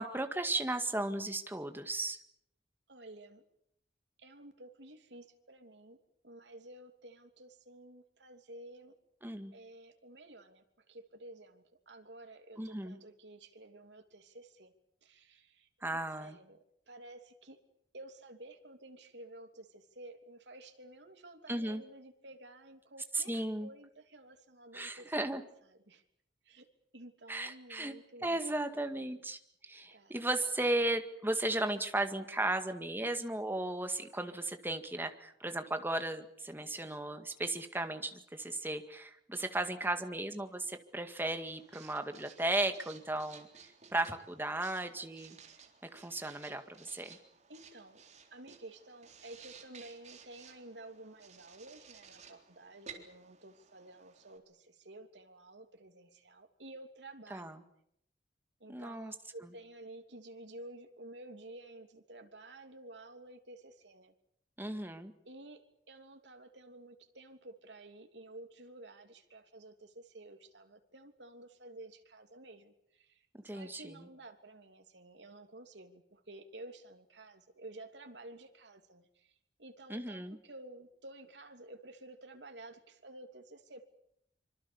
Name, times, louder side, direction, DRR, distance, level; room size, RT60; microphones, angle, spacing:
voice 1, 0.0-2.2 9.2-9.5 12.6-13.0 15.8-16.4 21.5-21.8 23.1-23.7 24.7-25.4 27.3-27.9 28.2-43.5 43.9-45.4 45.8-47.2 57.3-57.6 58.7-59.1 64.6-65.1 73.4-74.1 79.9-80.4, right 2 dB, 10° right, 7 dB, 1.9 m, -35 dB
voice 2, 2.9-3.4 4.2-6.0 6.2-8.9 9.5-14.7 15.0-15.7 16.2-16.6 16.9-17.6 17.9-25.4 25.7-26.0 26.4-26.7 26.9-28.4 29.9-30.1 47.5-48.0 48.3-57.7 58.6-64.1 65.2-73.3 73.5-79.3 79.6-83.9, right 2 dB, 85° right, 6 dB, 3.1 m, -52 dB
Writing, 41.1-54.4, right 6 dB, 40° right, 3.9 m, -56 dB
25.5 x 25.5 x 7.1 m, 0.74 s
head